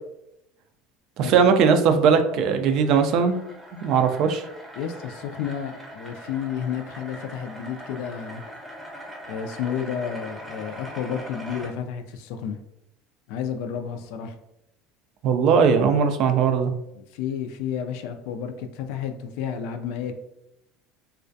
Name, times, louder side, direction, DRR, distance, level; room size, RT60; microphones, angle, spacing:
voice 1, 1.2-3.4 3.7-4.4 15.2-16.7, right 6 dB, 60° right, 7 dB, 0.3 m, -19 dB
sound 1, 2.3-11.7, equal, 5° right, 0.7 m, -41 dB
voice 2, 4.8-8.4 9.3-12.6 13.3-14.3 17.0-20.2, left 8 dB, 70° left, 6 dB, 0.3 m, -31 dB
2.3 x 2.1 x 2.6 m, 0.84 s
supercardioid pair, 95°, 0 cm